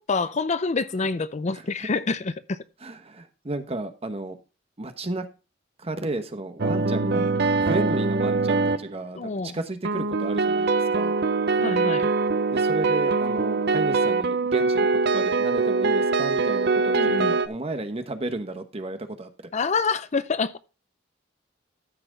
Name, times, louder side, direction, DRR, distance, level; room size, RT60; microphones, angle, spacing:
voice 1, 0.0-2.6 7.0-7.3 9.1-9.6 11.6-12.1 16.9-17.3 19.5-20.6, left 4 dB, 40° left, 0.5 m, -27 dB
voice 2, 2.8-4.4 4.8-5.2 5.8-7.2 7.6-11.1 12.5-19.3, right 2 dB, 30° right, 1.1 m, -33 dB
sound 1, 6.6-8.9 9.8-17.5, right 4 dB, 60° right, 0.7 m, -23 dB
13.5 x 5.9 x 3.9 m
head